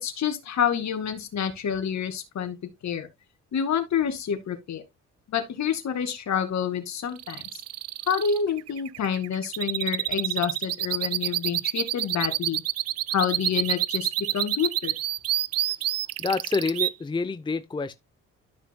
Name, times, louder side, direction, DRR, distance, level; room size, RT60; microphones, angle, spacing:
voice 1, 0.0-2.6 2.8-3.1 3.5-4.8 5.3-7.6 8.1-12.6 13.1-14.9, left 8 dB, 65° left, 2.3 m, -28 dB
sound 1, 7.2-16.9, right 13 dB, 55° right, 0.4 m, -28 dB
voice 2, 16.2-17.9, left 4 dB, 15° left, 0.6 m, -27 dB
13.0 x 6.0 x 2.2 m
cardioid pair, 90°, 30 cm